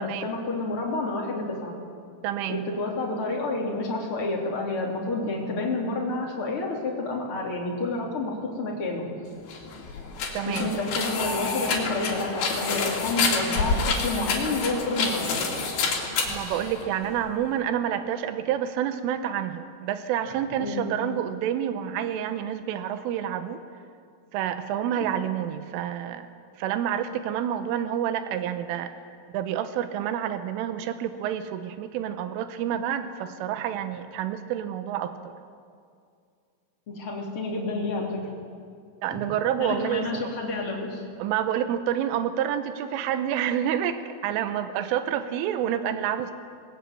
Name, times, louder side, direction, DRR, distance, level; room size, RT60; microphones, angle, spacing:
voice 1, 0.0-1.8 2.5-9.1 10.5-15.5 20.6-20.9 36.9-38.2 39.1-39.2 39.6-41.0, left 2 dB, 30° left, -1 dB, 3.5 m, -29 dB
voice 2, 2.2-2.7 10.3-10.7 16.3-23.6 24.3-26.3 26.6-28.9 29.3-35.3 39.0-40.3 41.2-46.3, right 10 dB, 90° right, 10 dB, 3.4 m, -28 dB
sound 1, 9.4-17.3, left 4 dB, 55° left, 4.4 m, -28 dB
21.0 x 20.5 x 9.3 m, 2.3 s
omnidirectional pair, 5.8 m